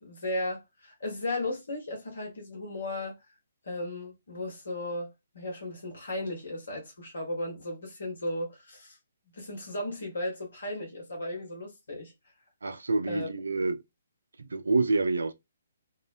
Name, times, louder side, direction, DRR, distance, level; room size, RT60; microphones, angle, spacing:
voice 1, 0.0-3.2 3.6-9.0 9.3-12.1 13.0-13.3, left 1 dB, 70° left, 1.1 m, -35 dB
voice 2, 12.6-13.8 14.4-15.3, right 3 dB, 75° right, 0.4 m, -27 dB
2.7 x 2.0 x 2.5 m
figure-of-eight pair, 130°, 0 cm